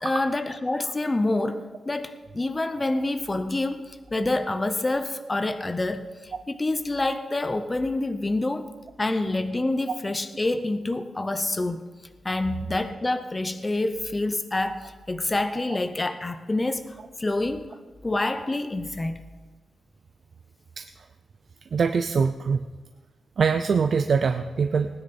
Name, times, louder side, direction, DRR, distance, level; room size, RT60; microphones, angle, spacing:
voice 1, 0.0-8.7 9.0-11.8 12.2-17.8 18.0-19.2, left 2 dB, 15° left, 9 dB, 0.6 m, -27 dB
voice 2, 21.7-22.6 23.4-24.9, right 5 dB, 45° right, 8 dB, 0.4 m, -23 dB
19.0 x 9.9 x 4.2 m, 1.3 s
wide cardioid pair, 175°, 0 cm